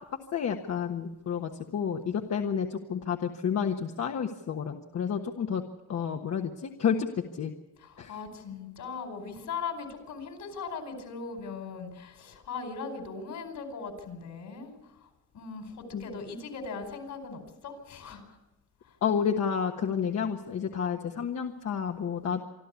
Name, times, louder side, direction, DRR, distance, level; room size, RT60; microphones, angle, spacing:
voice 1, 0.3-5.6 5.9-7.1 7.4-7.5 8.0-8.2 15.9-16.0 19.0-22.4, left 7 dB, 55° left, 3 dB, 1.4 m, -30 dB
voice 2, 7.8-14.7 15.3-18.2, left 5 dB, 75° left, 6 dB, 4.7 m, -39 dB
26.0 x 12.5 x 8.4 m, 1.0 s
cardioid pair, 90°, 30 cm